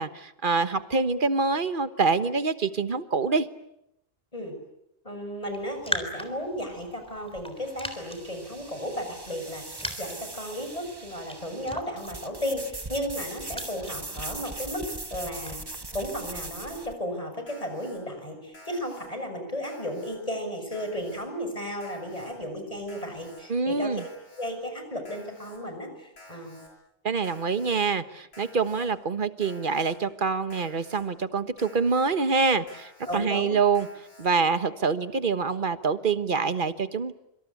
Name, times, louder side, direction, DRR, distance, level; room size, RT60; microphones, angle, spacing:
voice 1, 0.0-3.5 23.5-24.0 27.0-33.9 34.2-37.1, right 4 dB, 50° right, 12 dB, 1.4 m, -26 dB
voice 2, 5.0-15.6 15.9-24.0 24.4-26.6 33.0-33.5, equal, 30° left, 6 dB, 6.6 m, -34 dB
Raindrop, 5.4-16.1, equal, 5° left, 3.7 m, -41 dB
sound 1, 6.6-16.9, right 2 dB, 20° right, 1.2 m, -40 dB
Alarm, 17.5-18.0 18.5-19.1 19.6-20.2 20.7-21.2 21.8-22.3 22.9-23.4 24.0-24.5 25.0-25.6 26.2-26.7 27.2-27.8 28.3-28.9 29.4-29.9 30.5-31.0 31.6-32.1 32.7-33.2 33.7-34.3, left 2 dB, 65° left, 6.8 m, -51 dB
26.0 x 25.5 x 8.5 m, 0.80 s
omnidirectional pair, 1.1 m